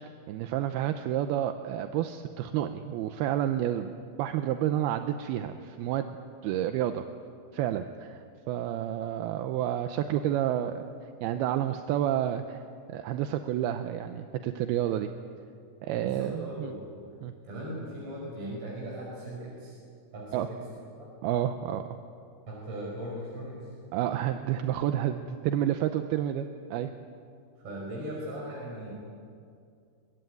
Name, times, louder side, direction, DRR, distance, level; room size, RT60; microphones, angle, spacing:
voice 1, 0.3-3.9 4.2-6.2 6.4-7.0 7.5-10.9 11.2-12.6 12.9-15.1 15.8-16.7 17.2-17.3 20.3-20.5 21.2-22.0 23.9-26.9, right 11 dB, 80° right, 8 dB, 2.6 m, -30 dB
voice 2, 15.9-17.0 17.4-19.8 20.1-20.6 21.0-21.1 22.5-23.7 27.6-28.9, right 1 dB, 35° right, -4 dB, 6.4 m, -38 dB
24.0 x 22.0 x 9.4 m, 2.4 s
omnidirectional pair, 4.8 m